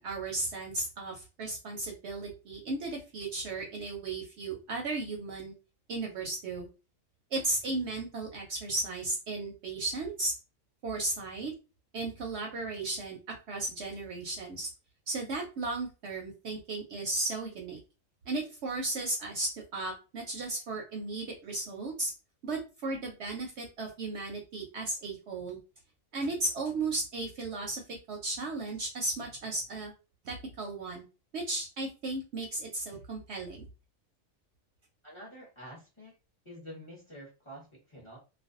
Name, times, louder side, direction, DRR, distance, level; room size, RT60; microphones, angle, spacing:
voice 1, 0.0-5.5 5.9-6.7 7.3-10.3 10.8-11.5 11.9-13.2 13.5-14.7 15.1-17.8 18.3-22.1 22.4-25.6 26.1-27.8 28.1-29.9 30.2-31.0 31.3-33.6, right 2 dB, 65° right, 1 dB, 0.7 m, -35 dB
voice 2, 35.0-36.1 36.4-38.2, equal, 25° left, -4 dB, 0.7 m, -48 dB
2.5 x 2.1 x 2.4 m, 0.30 s
omnidirectional pair, 1.4 m